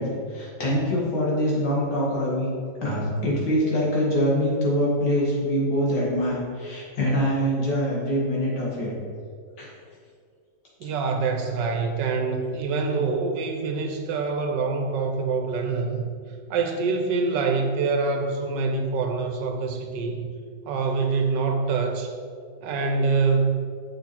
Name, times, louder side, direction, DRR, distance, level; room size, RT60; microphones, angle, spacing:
voice 1, 0.0-2.5 2.8-8.9 9.6-9.7, equal, 65° left, -4 dB, 2.5 m, -24 dB
voice 2, 10.8-16.1 16.5-20.3 20.6-22.1 22.6-23.7, right 4 dB, 75° right, 4 dB, 1.4 m, -25 dB
7.5 x 6.2 x 4.2 m, 2.1 s
omnidirectional pair, 2.0 m